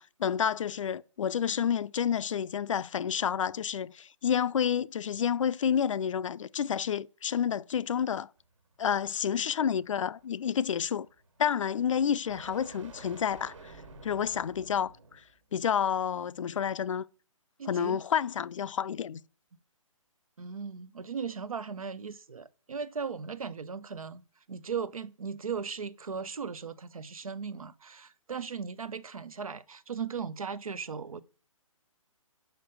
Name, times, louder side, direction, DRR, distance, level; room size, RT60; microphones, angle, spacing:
voice 1, 0.0-8.3 8.8-11.1 11.4-13.7 14.0-14.9 15.5-17.1 17.6-19.2, left 8 dB, 65° left, 0.4 m, -29 dB
sound 1, 8.4-15.4, right 3 dB, 65° right, 1.5 m, -52 dB
voice 2, 17.6-18.0 20.4-24.2 24.5-31.2, right 6 dB, 85° right, 0.6 m, -37 dB
5.7 x 5.1 x 6.7 m
hypercardioid pair, 145°, 18 cm